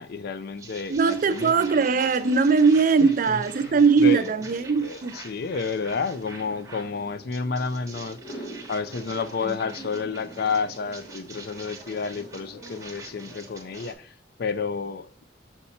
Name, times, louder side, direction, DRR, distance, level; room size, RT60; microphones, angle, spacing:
voice 1, 0.0-1.5 3.0-4.3 4.8-15.2, left 4 dB, 60° left, 0.4 m, -31 dB
sound 1, 0.6-6.9 7.3-13.9, right 3 dB, 15° right, 1.0 m, -45 dB
voice 2, 0.9-5.2, right 5 dB, 45° right, 0.4 m, -20 dB
sound 2, 1.1-13.9, right 1 dB, 45° left, 1.4 m, -46 dB
5.8 x 4.1 x 4.3 m
head